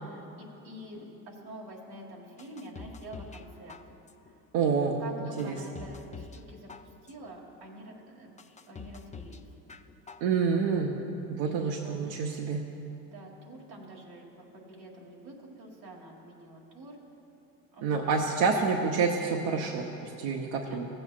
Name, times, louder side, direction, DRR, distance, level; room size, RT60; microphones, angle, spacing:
voice 1, 0.0-3.8 4.6-4.7 5.0-8.3 8.6-9.5 10.5-10.9 11.4-12.0 13.1-17.0 17.7-18.1 20.6-20.8, right 1 dB, 85° right, -3 dB, 2.1 m, -47 dB
sound 1, 2.4-3.4 3.7-4.3 4.8-4.9 5.4-6.4 6.7-7.3 7.8-7.9 8.4-9.4 9.7-10.3 10.6-10.7, left 5 dB, 15° left, 0.4 m, -45 dB
voice 2, 4.5-5.0 5.4-5.6 10.2-10.9 11.3-12.6 17.8-20.9, right 5 dB, 65° right, 1 dB, 1.0 m, -28 dB
17.0 x 7.9 x 2.5 m, 2.9 s
hypercardioid pair, 60°, 50 cm